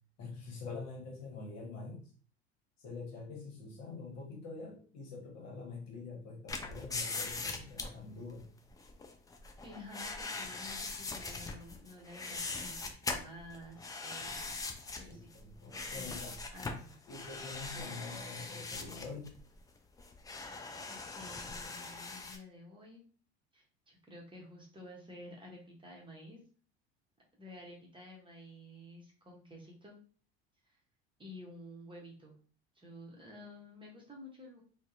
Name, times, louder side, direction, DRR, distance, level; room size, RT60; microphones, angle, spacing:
voice 1, 0.2-2.0 2.8-8.5 15.1-16.4 17.1-19.3, left 4 dB, 55° left, 1 dB, 1.1 m, -45 dB
sound 1, 6.5-22.4, left 3 dB, 10° left, 0.3 m, -41 dB
voice 2, 9.6-14.7 14.9-15.3 15.9-16.1 16.5-16.9 20.9-23.0 23.5-26.4 27.4-30.0 30.7-30.8 31.2-32.4 32.7-34.6, left 1 dB, 15° right, -1 dB, 0.8 m, -51 dB
2.6 x 2.1 x 2.4 m, 0.42 s
hypercardioid pair, 75°, 31 cm